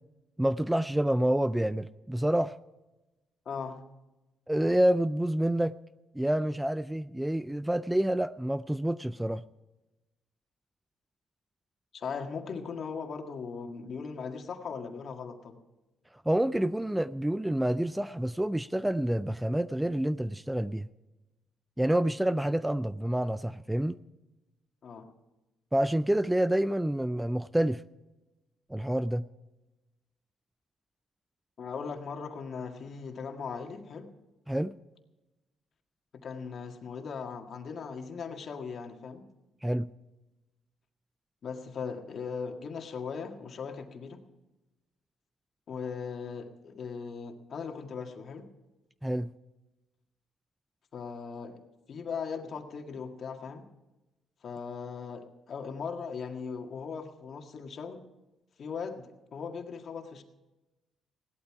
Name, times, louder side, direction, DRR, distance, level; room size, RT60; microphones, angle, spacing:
voice 1, 0.4-2.5 4.5-5.8 6.1-9.4 16.3-20.9 21.8-24.0 25.7-27.8 28.7-29.3 34.5-34.8 39.6-39.9 49.0-49.3, right 1 dB, 5° right, 0.4 m, -28 dB
voice 2, 3.4-3.8 11.9-15.6 24.8-25.1 31.6-34.1 36.2-39.2 41.4-44.2 45.7-48.5 50.9-51.6 51.9-53.7 54.4-58.0 58.6-60.2, left 5 dB, 55° left, 1.8 m, -39 dB
17.0 x 12.0 x 4.8 m
cardioid pair, 90°, 0 cm